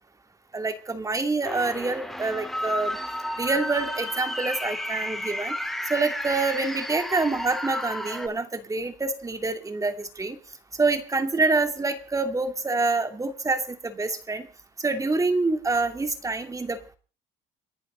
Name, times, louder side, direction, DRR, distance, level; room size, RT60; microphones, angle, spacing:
voice 1, 0.5-3.0 3.4-5.5 5.8-10.4 10.8-14.5 14.8-16.8, right 3 dB, 20° right, 8 dB, 2.6 m, -26 dB
sound 1, 1.4-8.3, left 1 dB, ahead, 2.4 m, -32 dB
29.5 x 11.0 x 3.9 m, 0.38 s
cardioid pair, 110°, 17 cm